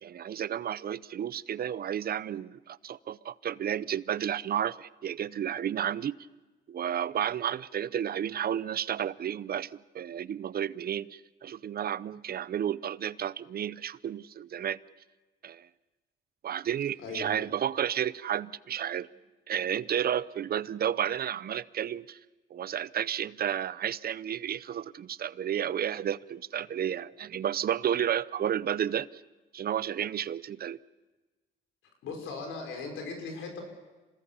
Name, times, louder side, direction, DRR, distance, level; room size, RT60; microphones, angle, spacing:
voice 1, 0.0-6.2 6.7-14.8 15.4-15.7 16.4-19.1 19.5-22.2 22.5-29.2 29.5-30.8, right 9 dB, 50° right, 0.6 m, -32 dB
voice 2, 17.0-17.3 32.0-33.6, left 4 dB, 90° left, 5.5 m, -38 dB
27.0 x 18.5 x 7.1 m
cardioid pair, 90°, 20 cm